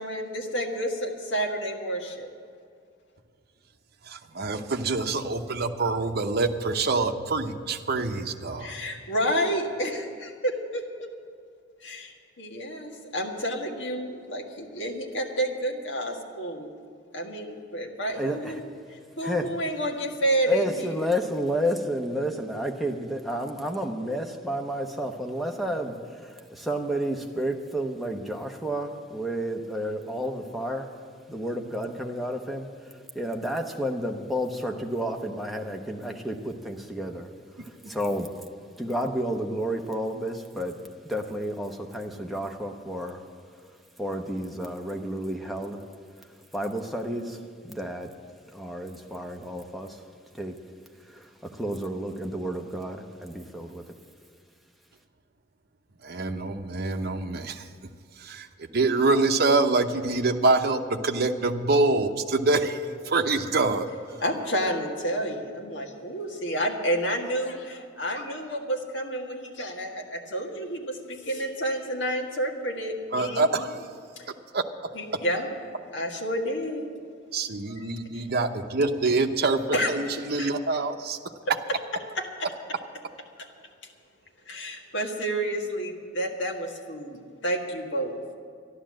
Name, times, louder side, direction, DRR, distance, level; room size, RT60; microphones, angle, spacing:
voice 1, 0.0-2.3 8.6-11.1 11.8-16.7 17.1-18.6 19.2-20.9 64.2-73.6 74.2-74.3 74.9-75.5 75.9-76.9 77.7-78.2 79.7-79.9 80.4-80.5 82.2-82.5 84.5-88.4, right 1 dB, 75° left, 1 dB, 1.8 m, -30 dB
voice 2, 4.0-8.8 56.0-57.7 58.2-58.5 58.7-63.9 73.1-73.8 74.5-74.6 77.3-81.2, right 3 dB, 55° right, 5 dB, 0.8 m, -25 dB
voice 3, 18.1-18.6 19.2-19.5 20.5-30.9 31.3-38.3 38.8-43.3 43.6-45.8 46.2-48.1 48.5-50.1 50.3-50.6 51.0-54.0, equal, ahead, 1 dB, 0.9 m, -31 dB
13.0 x 11.5 x 7.6 m, 2.2 s
head